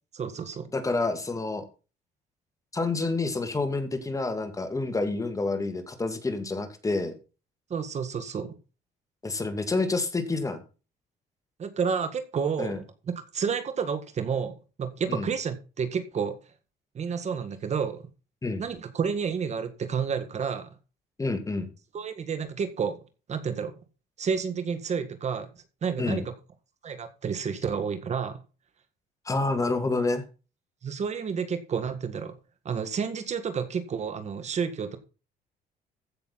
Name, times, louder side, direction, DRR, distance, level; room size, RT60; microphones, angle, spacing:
voice 1, 0.1-0.7 7.7-8.6 11.6-12.7 13.3-16.3 17.0-18.1 18.6-20.7 21.9-23.0 23.3-23.8 24.2-25.5 25.8-26.3 26.8-28.4 30.8-32.3 32.7-35.0, right 6 dB, 40° right, 10 dB, 1.8 m, -30 dB
voice 2, 0.7-1.6 2.7-7.1 9.2-10.6 12.6-12.8 15.1-15.3 18.4-18.6 21.2-21.7 26.0-26.3 29.3-30.2, left 3 dB, 20° left, 8 dB, 2.3 m, -28 dB
15.0 x 6.6 x 4.2 m, 0.33 s
cardioid pair, 110°, 17 cm